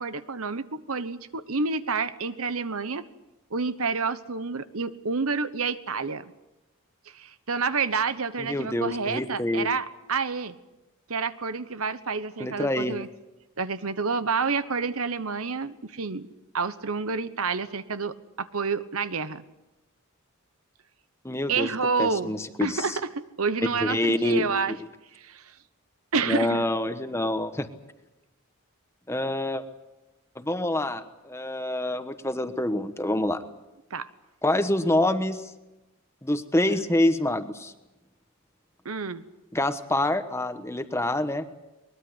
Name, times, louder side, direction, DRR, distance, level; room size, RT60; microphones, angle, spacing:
voice 1, 0.0-3.0 3.5-6.2 7.1-10.5 11.1-13.1 13.6-16.3 16.5-19.4 21.5-22.3 22.6-24.7 25.1-25.4 26.1-26.6 33.9-34.1 38.8-39.2, right 4 dB, 75° right, 13 dB, 1.1 m, -29 dB
voice 2, 8.4-9.7 12.4-13.0 21.2-21.7 22.0-23.0 23.8-24.8 26.2-27.7 29.1-29.6 30.4-33.4 34.4-35.4 36.2-37.7 39.5-41.5, left 1 dB, 10° left, 9 dB, 1.2 m, -26 dB
22.5 x 21.0 x 8.1 m, 1.0 s
head